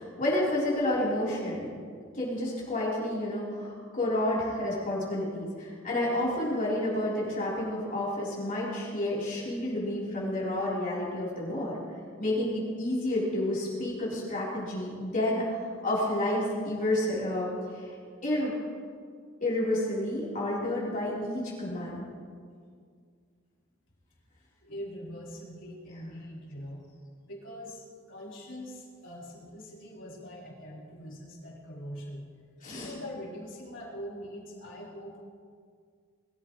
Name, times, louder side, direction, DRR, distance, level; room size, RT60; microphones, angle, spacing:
voice 1, 0.0-1.7 2.1-11.7 12.2-15.4 15.8-17.5 17.7-17.9 18.2-18.5 19.4-22.1 32.6-32.9, left 1 dB, 40° left, -7 dB, 3.9 m, -30 dB
voice 2, 24.6-26.8 27.2-32.2 32.7-35.2, equal, 65° left, -5 dB, 4.0 m, -43 dB
22.0 x 13.5 x 3.2 m, 2.1 s
head